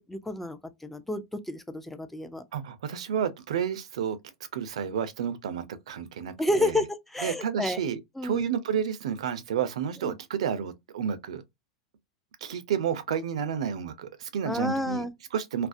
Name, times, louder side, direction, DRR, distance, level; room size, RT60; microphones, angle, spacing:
voice 1, 0.1-2.4 6.4-7.8 8.2-8.4 10.0-10.2 14.5-15.1, left 1 dB, 5° left, 0.4 m, -30 dB
voice 2, 2.5-4.2 4.5-6.8 7.2-11.4 12.4-15.7, right 8 dB, 80° right, 0.5 m, -31 dB
2.4 x 2.0 x 2.5 m
hypercardioid pair, 110°, 3 cm